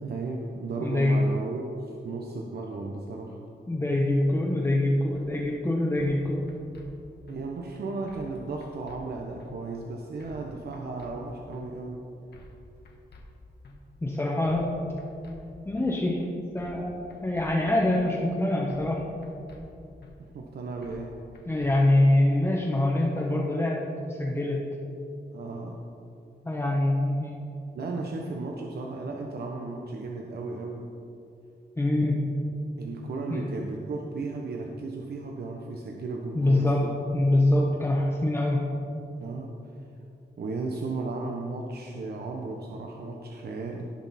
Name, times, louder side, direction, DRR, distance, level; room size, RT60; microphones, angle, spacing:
voice 1, 0.0-3.4 7.3-12.0 20.2-21.2 25.3-25.8 27.7-30.9 32.8-36.9 39.2-39.6 40.4-43.9, right 3 dB, 70° right, 0 dB, 0.9 m, -35 dB
voice 2, 0.8-1.2 3.7-6.4 14.0-14.7 15.6-16.3 16.5-16.9 17.2-19.0 21.5-23.8 24.1-24.6 26.4-27.4 31.8-32.2 33.3-33.4 36.3-36.9 37.1-38.6, left 1 dB, 15° left, -4 dB, 1.0 m, -24 dB
sound 1, 5.1-5.3 6.0-6.2 6.5-6.9 7.3-7.4 8.1-8.3 8.6-9.0 9.4-9.5 10.2-10.5 10.7-11.1 11.5-11.6 12.3-12.6 12.9-13.2 13.6-13.8 14.4-14.7 15.0-15.4 15.8-15.9 16.6-16.8 17.1-17.5 17.9-18.0 18.7-19.0 19.2-19.6 20.0-20.1 20.8-21.1 21.3-21.7, left 2 dB, 75° left, 1.4 m, -50 dB
17.5 x 6.1 x 4.2 m, 2.7 s
wide cardioid pair, 150°, 17 cm